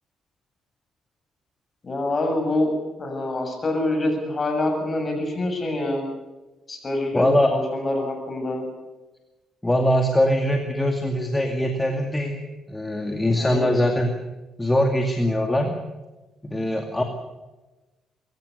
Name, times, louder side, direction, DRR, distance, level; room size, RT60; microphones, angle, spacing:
voice 1, 1.8-2.7 3.0-6.0 6.7-7.2 7.5-8.6 13.4-13.9, left 2 dB, 35° left, 4 dB, 7.5 m, -26 dB
voice 2, 7.1-7.5 9.6-12.4 12.7-14.1 14.6-15.7 16.4-17.0, left 1 dB, 15° left, 3 dB, 2.4 m, -22 dB
23.0 x 15.0 x 8.1 m, 1.1 s
cardioid pair, 90°, 0 cm